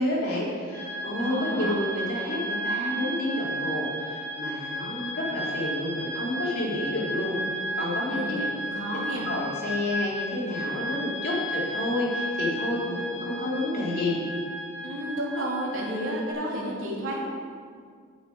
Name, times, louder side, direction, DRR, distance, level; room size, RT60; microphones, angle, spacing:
voice 1, 0.0-8.4 9.1-14.2, left 1 dB, 45° left, -6 dB, 3.5 m, -30 dB
sound 1, 0.7-16.3, right 1 dB, 10° left, 3.3 m, -34 dB
voice 2, 1.2-1.7 8.1-9.3 14.8-17.3, right 1 dB, 75° right, -4 dB, 3.1 m, -31 dB
9.1 x 8.3 x 7.9 m, 2.1 s
head